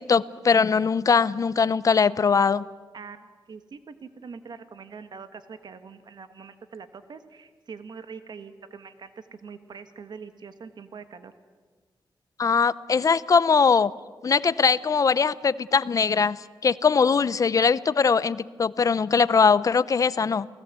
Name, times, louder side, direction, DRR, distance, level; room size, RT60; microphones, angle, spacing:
voice 1, 0.0-2.7 12.4-13.9 14.2-16.4 16.6-20.5, left 5 dB, 40° left, 17 dB, 0.6 m, -21 dB
voice 2, 2.9-11.3, right 5 dB, 60° right, 10 dB, 1.4 m, -43 dB
29.0 x 18.5 x 8.3 m, 1.4 s
wide cardioid pair, 135°, 8 cm